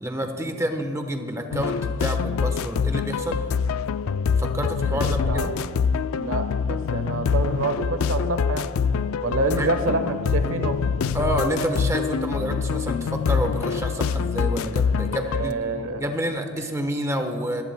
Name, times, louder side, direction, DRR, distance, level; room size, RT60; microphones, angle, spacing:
voice 1, 0.0-3.4 4.4-5.5 9.6-9.7 11.1-15.6 16.0-17.6, equal, 15° right, 5 dB, 1.0 m, -28 dB
sound 1, 1.5-15.5, left 6 dB, 75° left, 0.3 m, -25 dB
voice 2, 6.1-8.7 9.2-10.8 15.1-16.0, right 2 dB, 70° right, 8 dB, 1.1 m, -27 dB
25.5 x 15.5 x 2.2 m, 2.2 s
head